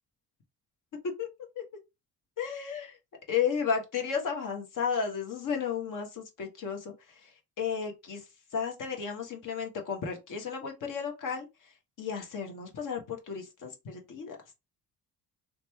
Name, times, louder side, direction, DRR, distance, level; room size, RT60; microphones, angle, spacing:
voice 1, 2.4-3.0 3.3-14.4, left 6 dB, 45° left, 1.1 m, -34 dB
2.8 x 2.3 x 2.8 m
hypercardioid pair, 50°, 43 cm